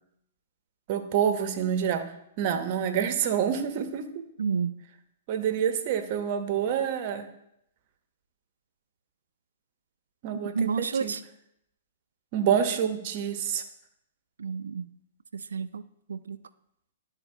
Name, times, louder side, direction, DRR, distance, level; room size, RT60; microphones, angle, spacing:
voice 1, 0.9-4.3 5.3-7.3 10.2-11.1 12.3-13.6, right 8 dB, 50° right, 9 dB, 0.8 m, -27 dB
voice 2, 4.4-4.7 10.5-11.2 14.4-14.9 15.3-15.8 16.1-16.4, right 6 dB, 80° right, 14 dB, 0.3 m, -30 dB
11.0 x 4.0 x 2.7 m, 0.78 s
hypercardioid pair, 120°, 0 cm